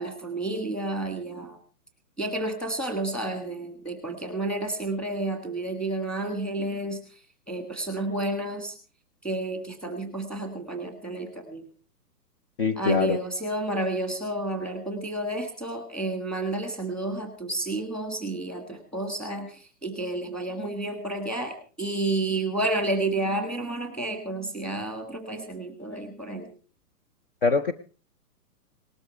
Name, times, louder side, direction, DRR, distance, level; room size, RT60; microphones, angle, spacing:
voice 1, 0.0-1.6 2.2-7.0 7.5-8.7 9.2-11.6 12.8-26.5, right 2 dB, ahead, 5 dB, 1.6 m, -30 dB
voice 2, 12.6-13.2 27.4-27.7, left 5 dB, 35° left, 9 dB, 0.7 m, -23 dB
19.0 x 13.0 x 4.6 m, 0.39 s
hypercardioid pair, 170°, 47 cm